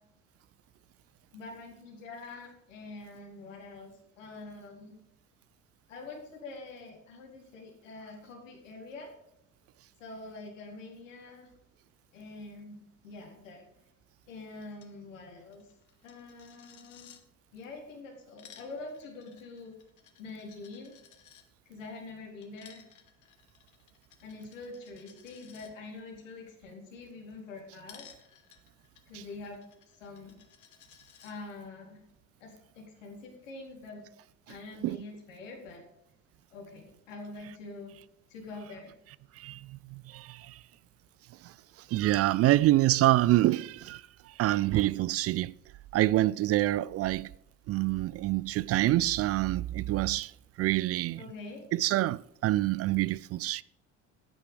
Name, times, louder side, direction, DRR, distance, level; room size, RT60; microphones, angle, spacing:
voice 1, 1.3-3.9 4.2-5.0 5.9-9.1 10.0-11.5 12.1-13.6 14.3-15.7 16.0-17.1 17.5-19.7 20.2-20.9 21.7-22.8 24.2-28.1 29.1-29.6 29.9-30.4 31.2-32.0 32.4-34.0 34.5-35.8 36.5-37.9 38.3-38.9 51.2-51.6, left 3 dB, 75° left, 4.2 m, -45 dB
Coin (dropping), 14.7-14.9 15.2-15.3 15.5-17.2 18.1-21.4 22.4-25.7 27.9-31.3, left 8 dB, 50° left, 2.1 m, -57 dB
voice 2, 39.4-40.6 41.4-41.5 41.9-45.5 45.9-47.3 47.7-50.3 50.6-51.2 51.7-53.6, right 16 dB, 40° right, 0.4 m, -26 dB
14.0 x 9.9 x 5.1 m
figure-of-eight pair, 55°, 38 cm